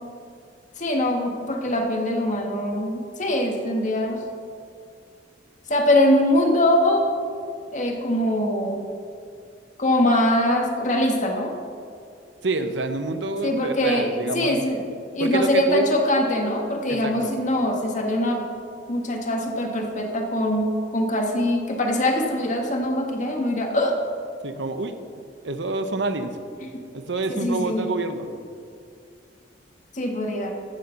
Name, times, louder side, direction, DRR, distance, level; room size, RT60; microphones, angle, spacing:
voice 1, 0.8-4.2 5.7-7.1 7.7-8.8 9.8-11.5 13.4-14.8 15.1-18.5 18.9-24.0 26.6-26.8 27.3-27.9 29.9-30.5, left 1 dB, 45° left, 2 dB, 1.6 m, -23 dB
voice 2, 12.4-14.6 15.2-15.9 16.9-17.3 24.4-24.9 25.4-26.3 26.9-28.3, right 2 dB, 90° right, 8 dB, 0.9 m, -27 dB
14.5 x 6.7 x 5.8 m, 2.3 s
head